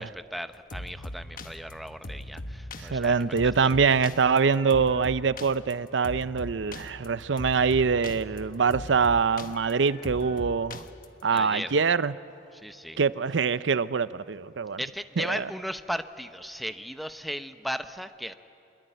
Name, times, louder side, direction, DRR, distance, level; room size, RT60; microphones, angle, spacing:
voice 1, 0.0-3.1 11.3-11.7 12.6-13.0 14.8-18.3, equal, ahead, 10 dB, 0.7 m, -36 dB
sound 1, 0.7-11.4, left 1 dB, 50° left, 1.2 m, -40 dB
voice 2, 2.8-10.8 11.2-12.1 13.0-14.8 15.2-15.5, right 5 dB, 85° right, 16 dB, 0.6 m, -24 dB
25.0 x 21.5 x 9.2 m, 2.7 s
head